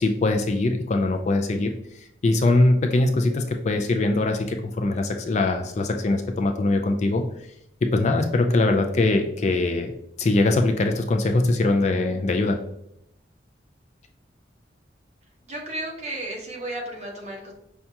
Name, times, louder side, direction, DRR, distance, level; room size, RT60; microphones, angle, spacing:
voice 1, 0.0-1.7 2.2-7.2 7.8-9.9 10.2-12.6, left 2 dB, 40° left, 4 dB, 0.3 m, -22 dB
voice 2, 15.4-17.5, right 1 dB, 40° right, -2 dB, 1.0 m, -33 dB
5.7 x 2.3 x 2.7 m, 0.77 s
head